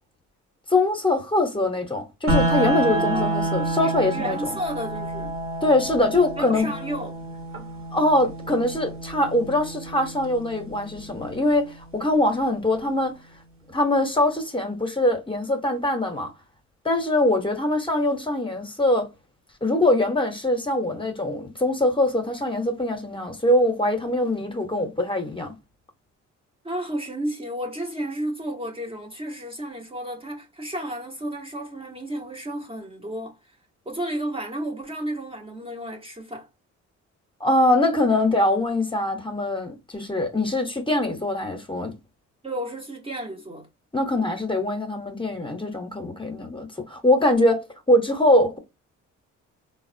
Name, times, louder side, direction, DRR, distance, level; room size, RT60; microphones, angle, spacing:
voice 1, 0.7-4.6 5.6-6.7 7.9-13.2 13.7-16.3 16.8-19.1 19.6-25.5 37.4-41.9 43.9-48.6, left 1 dB, 15° left, 0.7 m, -23 dB
sound 1, 2.3-12.3, right 2 dB, 45° right, 0.9 m, -29 dB
voice 2, 2.9-5.3 6.4-7.1 26.6-33.4 33.9-36.5 42.4-43.7, right 1 dB, 20° right, 0.7 m, -32 dB
3.5 x 2.1 x 2.5 m
cardioid pair, 90°, 30 cm